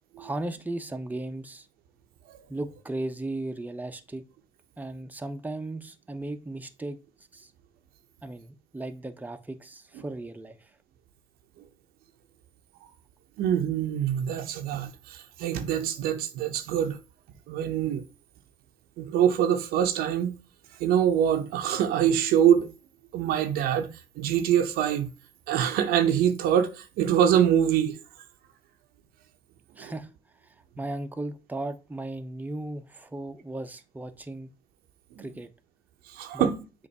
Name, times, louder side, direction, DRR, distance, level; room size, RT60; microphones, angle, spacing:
voice 1, 0.2-1.7 2.5-4.2 4.8-7.0 7.3-7.5 8.2-10.7 29.8-30.1 30.8-34.5 35.2-35.5 36.3-36.5, right 2 dB, 10° right, 0.8 m, -36 dB
voice 2, 13.4-17.0 17.5-18.0 19.0-20.4 20.8-22.7 23.1-25.1 25.5-28.0 29.8-29.9 35.2-35.3 36.1-36.6, right 9 dB, 90° right, 0.8 m, -24 dB
7.0 x 2.6 x 5.4 m
cardioid pair, 85°, 15 cm